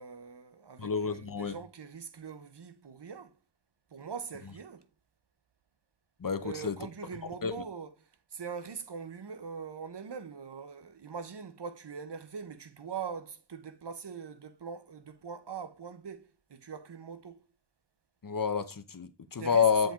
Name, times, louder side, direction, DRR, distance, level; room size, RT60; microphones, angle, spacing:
voice 1, 0.0-3.4 3.9-4.9 6.4-17.4 19.4-19.9, right 6 dB, 65° right, 0.9 m, -42 dB
voice 2, 0.8-1.5 6.2-6.7 7.4-7.5 18.2-19.9, left 6 dB, 50° left, 0.9 m, -28 dB
7.8 x 4.5 x 3.7 m
wide cardioid pair, 70°, 44 cm